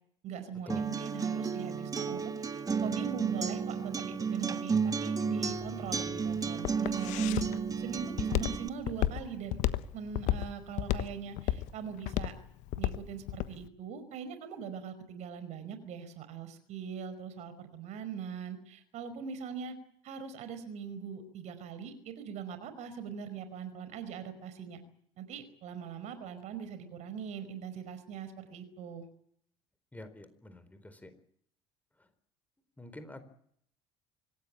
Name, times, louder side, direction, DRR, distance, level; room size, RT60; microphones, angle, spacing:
voice 1, 0.2-7.4 7.8-9.6 9.9-12.3 12.8-19.8 20.0-24.8 25.2-29.0, right 7 dB, 55° right, 11 dB, 5.0 m, -42 dB
Acoustic guitar, 0.7-8.7, right 5 dB, 25° right, 1.8 m, -32 dB
Walk footsteps, 5.4-13.6, left 14 dB, 60° left, 1.3 m, -32 dB
voice 2, 29.9-31.1 32.8-33.2, left 1 dB, 10° left, 11 dB, 4.3 m, -46 dB
25.5 x 18.0 x 8.7 m, 0.68 s
figure-of-eight pair, 60°, 14 cm